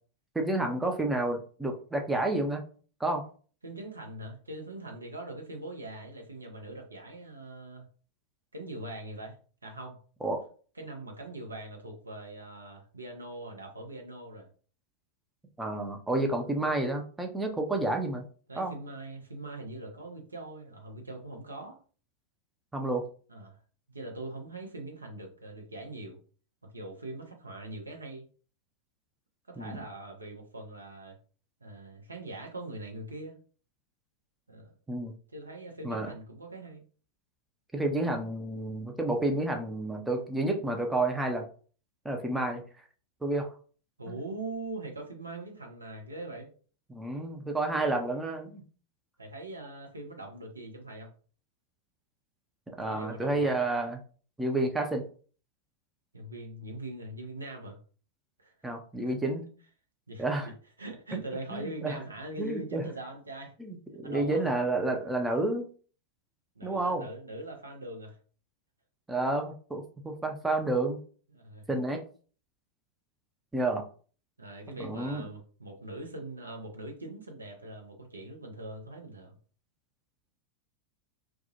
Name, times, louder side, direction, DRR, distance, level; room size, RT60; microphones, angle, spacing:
voice 1, 0.3-2.6 3.0-3.2 10.2-10.4 15.6-18.2 18.6-18.7 22.7-23.0 29.6-29.8 34.9-35.1 35.8-36.1 37.7-41.5 42.0-42.6 43.2-43.5 46.9-48.6 52.8-54.0 54.4-55.1 58.6-59.5 60.2-60.5 61.5-62.0 62.4-62.8 63.6-65.7 66.6-67.1 69.1-71.0 71.7-72.0 73.5-73.8 74.8-75.3, right 2 dB, 10° right, 3 dB, 0.4 m, -30 dB
voice 2, 3.6-7.8 8.5-10.0 10.8-14.5 16.3-16.4 18.5-21.8 23.3-23.6 23.9-26.2 26.6-28.3 29.5-31.2 31.6-33.4 34.5-34.7 35.3-36.8 44.0-46.5 49.2-51.1 52.8-53.6 56.1-57.8 58.4-58.5 60.1-60.2 60.8-63.5 64.0-64.4 66.6-68.2 71.3-71.7 74.4-79.3, right 2 dB, 80° right, 1 dB, 0.6 m, -42 dB
2.3 x 2.1 x 2.7 m, 0.41 s
figure-of-eight pair, 90°, 0 cm